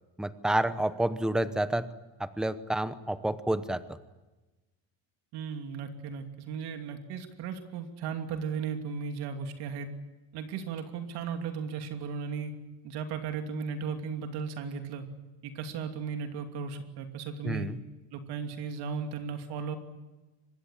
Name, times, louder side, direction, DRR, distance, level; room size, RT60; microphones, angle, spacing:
voice 1, 0.2-1.9 2.2-3.8 17.4-17.8, right 1 dB, ahead, 13 dB, 0.8 m, -29 dB
voice 2, 5.3-9.9 10.3-12.6 12.8-15.0 15.4-17.7 18.1-19.8, right 6 dB, 70° right, 6 dB, 2.8 m, -36 dB
24.5 x 20.5 x 10.0 m, 1.1 s
cardioid pair, 155°, 41 cm